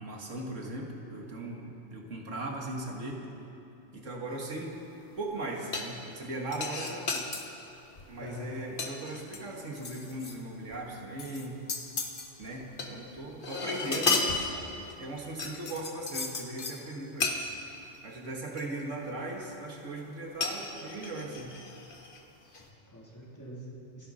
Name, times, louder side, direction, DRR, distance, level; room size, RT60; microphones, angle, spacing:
voice 1, 0.0-3.2 3.9-4.7 5.2-7.3 8.1-11.6 12.4-14.5 15.0-17.5 18.0-21.5, right 2 dB, 85° right, 0 dB, 2.2 m, -38 dB
sound 1, 5.7-6.2 6.5-7.4 8.0-8.2 8.5-10.4 10.7-10.8 11.2-12.9 13.2-15.0 15.4-16.8 17.2-17.4 17.9-18.0 18.6-19.2 20.4-22.2 22.5-22.7, left 4 dB, 45° left, 1.4 m, -34 dB
voice 2, 8.2-8.5 22.4-24.1, equal, 15° left, -6 dB, 3.3 m, -45 dB
27.0 x 11.5 x 4.3 m, 2.9 s
omnidirectional pair, 1.3 m